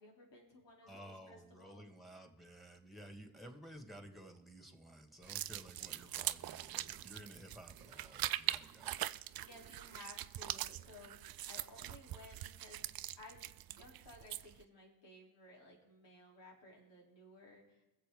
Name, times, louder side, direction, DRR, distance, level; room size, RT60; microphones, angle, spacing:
voice 1, 0.0-1.9 9.4-12.8 13.2-17.8, left 2 dB, 75° left, -2 dB, 4.2 m, -57 dB
voice 2, 0.8-9.0, right 1 dB, ahead, 5 dB, 2.1 m, -54 dB
sound 1, 5.2-14.6, right 13 dB, 55° right, 0.5 m, -42 dB
21.5 x 7.6 x 4.0 m, 0.99 s
supercardioid pair, 65°, 44 cm